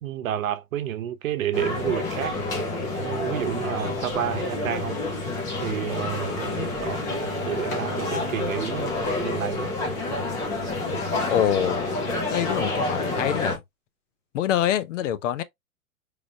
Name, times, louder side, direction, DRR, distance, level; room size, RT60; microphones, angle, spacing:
voice 1, 0.0-2.4 3.0-5.0 5.6-8.9 9.2-9.7, right 10 dB, 65° right, 0.8 m, -30 dB
sound 1, 1.5-13.6, left 2 dB, 10° left, 0.3 m, -28 dB
voice 2, 11.3-11.9 12.3-13.6 14.3-15.4, left 10 dB, 55° left, 0.6 m, -25 dB
4.9 x 3.3 x 2.2 m
figure-of-eight pair, 110°, 45 cm